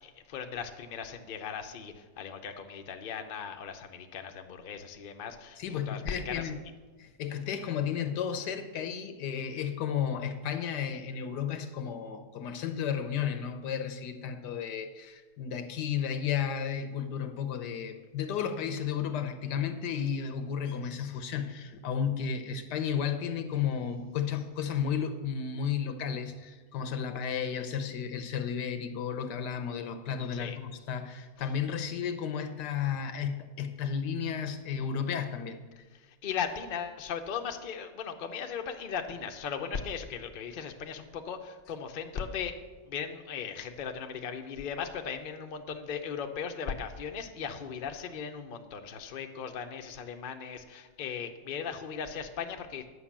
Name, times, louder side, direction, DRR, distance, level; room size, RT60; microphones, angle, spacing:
voice 1, 0.0-6.5 30.3-30.6 35.9-42.5 42.9-52.9, left 7 dB, 45° left, 5 dB, 0.7 m, -38 dB
voice 2, 5.6-6.6 7.0-35.8, left 7 dB, 85° left, 9 dB, 1.4 m, -33 dB
9.8 x 5.9 x 7.3 m, 1.3 s
omnidirectional pair, 1.8 m